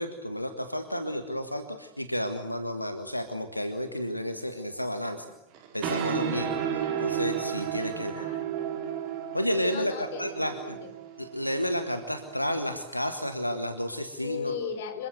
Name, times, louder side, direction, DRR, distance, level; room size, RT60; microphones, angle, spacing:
voice 1, 0.0-5.3 5.7-8.3 9.3-10.5 11.2-14.5, equal, 90° left, 8 dB, 1.7 m, -31 dB
sound 1, 5.5-12.7, right 9 dB, 45° right, 4.5 m, -33 dB
voice 2, 7.8-8.7 9.7-10.9 14.2-15.1, left 7 dB, 55° left, 10 dB, 3.7 m, -38 dB
27.0 x 23.5 x 8.1 m, 0.86 s
figure-of-eight pair, 90°, 0 cm